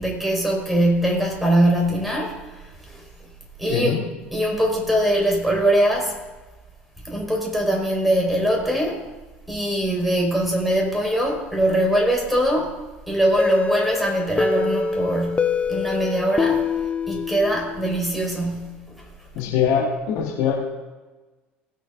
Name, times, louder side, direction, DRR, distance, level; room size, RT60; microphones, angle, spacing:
voice 1, 0.0-3.0 3.6-4.1 4.3-6.2 7.0-9.0 9.5-12.7 13.1-16.7 17.1-19.0, right 1 dB, ahead, -1 dB, 4.7 m, -22 dB
sound 1, 13.4-18.1, left 4 dB, 20° left, 0.6 m, -25 dB
voice 2, 19.3-20.5, left 8 dB, 60° left, -2 dB, 2.3 m, -22 dB
20.0 x 6.9 x 3.8 m, 1.2 s
figure-of-eight pair, 65°, 6 cm